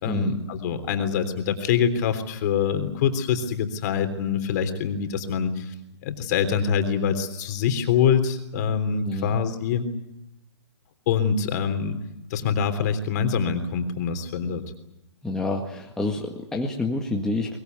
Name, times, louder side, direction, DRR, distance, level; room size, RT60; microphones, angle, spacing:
voice 1, 0.0-5.7 6.0-9.9 11.1-12.0 12.3-14.6, left 7 dB, 35° left, 8 dB, 3.5 m, -25 dB
voice 2, 9.1-9.4 15.2-17.6, left 2 dB, 5° left, 0 dB, 1.8 m, -28 dB
23.0 x 21.5 x 9.5 m, 0.88 s
hypercardioid pair, 145°, 15 cm